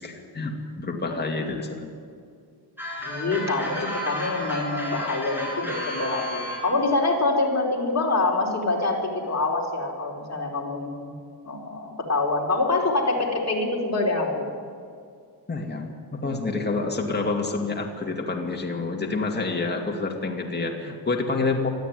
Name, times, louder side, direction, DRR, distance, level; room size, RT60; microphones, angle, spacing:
voice 1, 0.0-1.9 15.5-21.7, left 3 dB, 25° left, 1 dB, 2.4 m, -28 dB
sound 1, 2.8-6.7, left 1 dB, 5° right, 7.3 m, -32 dB
voice 2, 3.0-11.1 11.4-14.5, left 2 dB, 40° left, -2 dB, 4.4 m, -25 dB
21.0 x 13.5 x 9.5 m, 2.2 s
wide cardioid pair, 115°, 39 cm